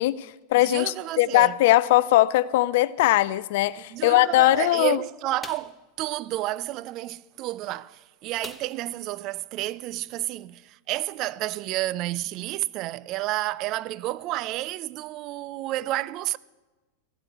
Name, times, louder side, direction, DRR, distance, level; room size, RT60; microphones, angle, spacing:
voice 1, 0.0-5.0, left 16 dB, 65° left, 0.4 m, -20 dB
voice 2, 0.7-1.5 3.9-16.4, right 16 dB, 45° right, 0.4 m, -30 dB
sound 1, 5.4-5.8 8.4-9.0 9.4-9.5 9.9-10.0, left 4 dB, 15° left, 0.9 m, -42 dB
15.0 x 7.8 x 7.8 m
hypercardioid pair, 105°, 0 cm